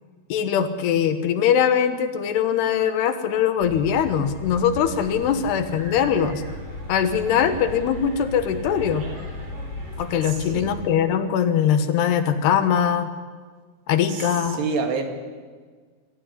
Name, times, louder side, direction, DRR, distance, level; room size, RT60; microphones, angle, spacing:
voice 1, 0.3-6.4 6.9-9.1 10.0-13.1 13.9-14.6, left 8 dB, 75° left, 9 dB, 3.2 m, -21 dB
sound 1, 3.6-10.9, left 2 dB, 40° left, 3.1 m, -36 dB
sound 2, 4.6-10.3, right 2 dB, 55° right, 5.8 m, -45 dB
voice 2, 10.2-10.7 14.1-15.0, right 5 dB, 75° right, 5 dB, 4.2 m, -28 dB
24.5 x 13.5 x 9.9 m, 1.5 s
omnidirectional pair, 4.9 m